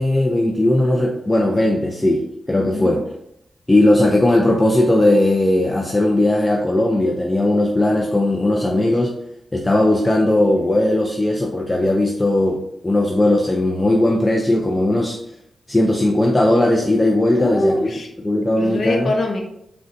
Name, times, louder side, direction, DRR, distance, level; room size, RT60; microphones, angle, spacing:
voice 1, 0.0-2.2 2.5-3.0 3.7-9.1 9.5-15.2 15.7-17.8 18.2-19.1, left 1 dB, 15° left, 0 dB, 0.4 m, -17 dB
voice 2, 2.6-2.9 17.4-18.1 18.6-19.4, left 2 dB, 60° left, 2 dB, 0.6 m, -23 dB
3.7 x 2.2 x 2.6 m, 0.75 s
cardioid pair, 80°, 0 cm